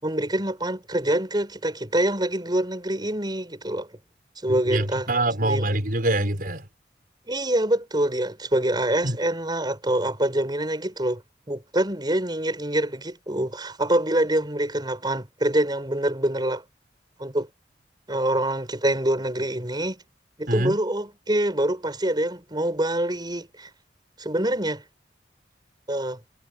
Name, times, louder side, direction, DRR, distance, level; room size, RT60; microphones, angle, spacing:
voice 1, 0.0-3.9 4.4-5.1 5.4-5.8 6.1-6.3 7.3-11.2 11.5-16.6 17.2-17.5 18.1-20.0 20.4-23.7 24.2-24.8 25.9-26.2, right 1 dB, 25° right, 7.0 m, -25 dB
voice 2, 4.5-6.6 9.0-9.2 20.5-20.8, right 1 dB, 55° right, 5.6 m, -25 dB
head